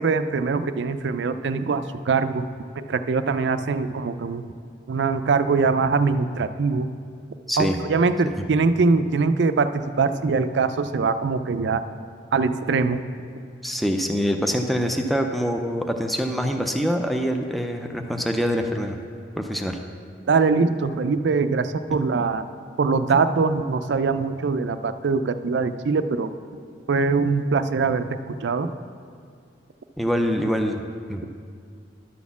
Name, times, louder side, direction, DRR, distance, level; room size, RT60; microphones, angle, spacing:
voice 1, 0.0-2.5 2.8-4.4 4.9-6.9 7.6-11.8 12.3-13.0 20.3-22.4 22.8-26.3 26.9-28.7, right 4 dB, 65° right, 11 dB, 0.4 m, -22 dB
voice 2, 7.5-7.8 8.4-8.5 13.6-19.0 19.4-19.8 21.9-22.0 30.0-30.8 31.1-31.2, equal, ahead, 3 dB, 0.4 m, -25 dB
11.0 x 4.3 x 7.0 m, 2.3 s
head